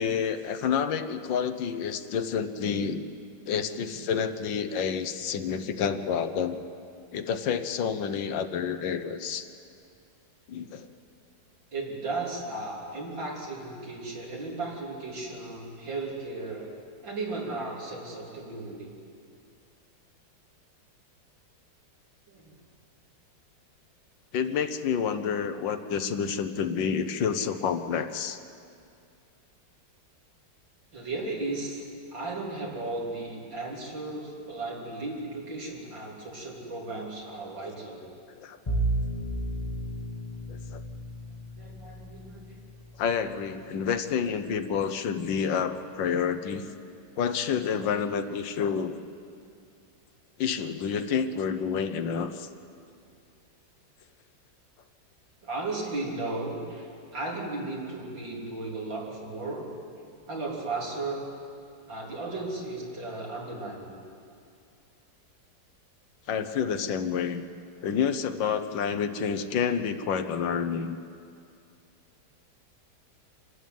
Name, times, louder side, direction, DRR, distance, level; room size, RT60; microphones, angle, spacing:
voice 1, 0.0-3.0 3.5-6.6 7.1-9.5 10.5-10.8 24.3-28.4 38.4-38.6 40.5-40.8 43.0-46.7 47.2-49.0 50.4-52.5 66.3-67.4 67.8-71.0, left 7 dB, 75° left, 9 dB, 1.6 m, -29 dB
voice 2, 3.7-4.1 11.7-16.7 17.0-18.9 22.3-22.6 30.9-38.0 41.6-42.7 43.5-43.6 55.4-59.7 59.9-61.3 61.9-64.0, right 2 dB, 80° right, -3 dB, 4.3 m, -35 dB
Bowed string instrument, 38.7-43.8, right 1 dB, 20° left, 1.1 m, -33 dB
26.5 x 12.5 x 9.3 m, 2.4 s
omnidirectional pair, 2.0 m